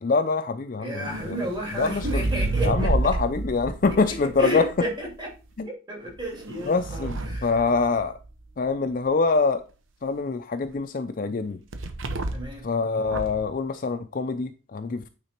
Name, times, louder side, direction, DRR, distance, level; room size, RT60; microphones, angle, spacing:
voice 1, 0.0-1.4 1.7-2.2 2.6-4.7 5.6-5.7 6.7-8.2 8.6-9.6 10.0-11.6 12.6-15.1, left 4 dB, 45° left, 0.4 m, -25 dB
voice 2, 0.8-2.9 4.1-5.3 5.6-7.5 12.3-12.6, right 1 dB, 20° right, 2.6 m, -32 dB
sound 1, 1.0-5.1 6.1-8.4 11.7-12.6 13.0-13.5, right 2 dB, 80° right, 0.9 m, -30 dB
8.8 x 3.9 x 4.3 m
head